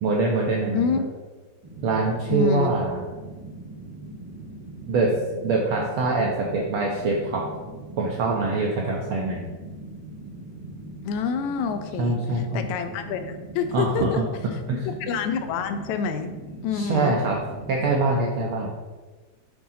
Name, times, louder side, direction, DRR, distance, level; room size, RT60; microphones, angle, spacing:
voice 1, 0.0-0.9 1.8-3.0 4.9-5.1 5.4-7.4 8.0-9.5 12.0-12.7 13.7-14.2 14.7-14.9 16.7-17.4 17.7-18.8, right 3 dB, 80° right, -2 dB, 1.2 m, -24 dB
sound 1, 1.6-18.2, right 1 dB, 15° right, 0.9 m, -41 dB
voice 2, 2.3-2.8 11.0-14.2 14.9-16.3 16.6-17.2, left 6 dB, 85° left, 8 dB, 1.9 m, -27 dB
8.4 x 3.7 x 4.1 m, 1.3 s
omnidirectional pair, 3.3 m